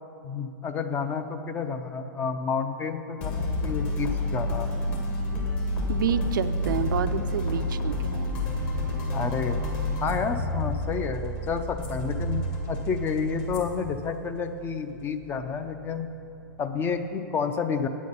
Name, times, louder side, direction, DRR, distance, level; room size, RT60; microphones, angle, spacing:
voice 1, 0.2-4.7 9.1-9.7 10.0-16.1 16.6-17.9, left 5 dB, 20° left, 9 dB, 0.5 m, -30 dB
sound 1, 3.2-16.6, left 1 dB, 45° left, 2.0 m, -30 dB
voice 2, 5.9-8.3, right 8 dB, 70° right, 10 dB, 0.5 m, -29 dB
8.4 x 8.3 x 5.4 m, 2.8 s
hypercardioid pair, 125°, 11 cm